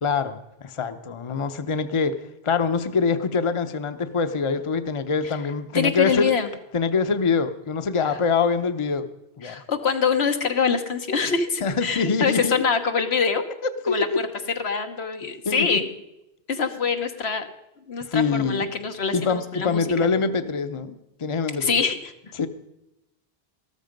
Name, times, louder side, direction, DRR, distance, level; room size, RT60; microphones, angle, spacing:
voice 1, 0.0-2.2 2.4-6.3 6.7-9.1 9.4-9.6 11.6-12.6 13.9-14.2 15.5-15.8 18.1-18.6 19.1-21.8 22.4-22.5, left 5 dB, 35° left, 10 dB, 0.7 m, -24 dB
voice 2, 5.7-6.5 9.4-13.4 13.9-14.3 14.6-15.8 16.5-17.5 17.9-19.8 21.6-22.1, left 5 dB, 85° left, 6 dB, 1.5 m, -24 dB
13.5 x 13.5 x 5.2 m, 0.90 s
omnidirectional pair, 1.1 m